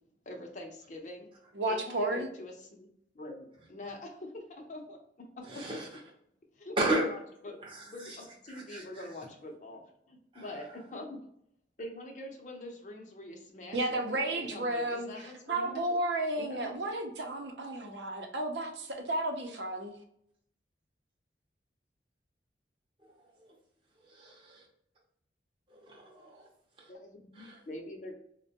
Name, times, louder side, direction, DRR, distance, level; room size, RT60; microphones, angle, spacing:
voice 1, 0.3-1.3 1.7-2.9 3.1-5.7 6.6-7.5 7.8-9.8 10.1-11.2 11.8-16.0 16.3-16.7 26.9-28.1, left 1 dB, 45° left, 2 dB, 0.7 m, -44 dB
voice 2, 1.5-2.3 13.7-20.0, right 1 dB, 75° right, 3 dB, 0.6 m, -33 dB
voice 3, 5.5-5.9 6.8-7.0 7.6-8.2 8.5-8.8 10.3-10.4 24.1-24.6 25.7-26.4 27.4-27.6, right 1 dB, 30° right, -3 dB, 0.7 m, -34 dB
4.3 x 2.2 x 2.8 m, 0.72 s
head